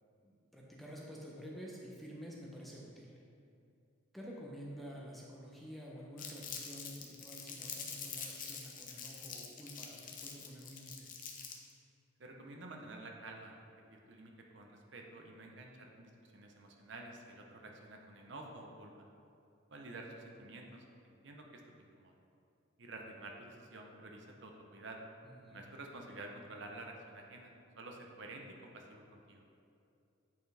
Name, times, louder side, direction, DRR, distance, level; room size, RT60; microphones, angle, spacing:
voice 1, 0.2-3.2 4.1-11.1 25.2-25.6, equal, ahead, -4 dB, 0.6 m, -49 dB
Crumpling crinkling, 6.2-11.7, left 6 dB, 40° left, 0.6 m, -45 dB
voice 2, 12.2-13.6 13.9-18.9 19.7-22.1 22.8-25.0 25.5-29.4, right 2 dB, 60° right, 1 dB, 0.7 m, -50 dB
8.3 x 4.5 x 3.3 m, 2.5 s
head